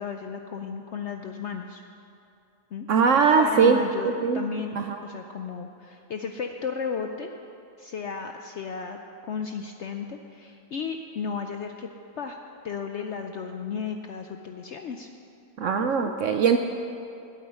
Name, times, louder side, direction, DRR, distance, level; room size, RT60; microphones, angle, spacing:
voice 1, 0.0-1.8 2.7-2.9 3.4-7.3 7.8-9.0 9.3-11.9 12.2-12.4 12.6-15.1 15.8-16.1, left 6 dB, 65° left, 5 dB, 0.7 m, -34 dB
voice 2, 2.9-4.4 4.7-5.0 15.6-16.6, right 5 dB, 70° right, 6 dB, 0.7 m, -21 dB
9.0 x 8.6 x 9.5 m, 2.6 s
omnidirectional pair, 1.7 m